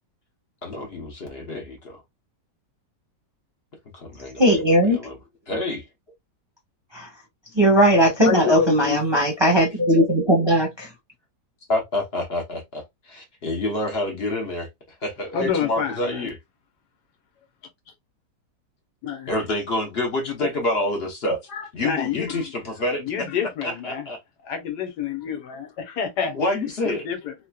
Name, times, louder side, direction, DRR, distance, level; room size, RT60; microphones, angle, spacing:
voice 1, 0.6-2.0 3.9-5.2 5.5-5.8 11.7-14.7 15.0-16.4 19.3-21.4 21.7-23.3 23.6-24.2 26.3-27.1, left 1 dB, 45° left, 1.0 m, -28 dB
voice 2, 4.4-5.0 6.9-7.1 7.5-10.9, equal, 20° right, 0.9 m, -18 dB
voice 3, 8.3-9.0 15.3-16.3 19.0-19.3 20.4-20.5 21.5-22.5 23.0-24.1 24.4-26.4 26.8-27.3, left 7 dB, 75° left, 1.4 m, -27 dB
3.3 x 2.9 x 2.2 m
omnidirectional pair, 1.8 m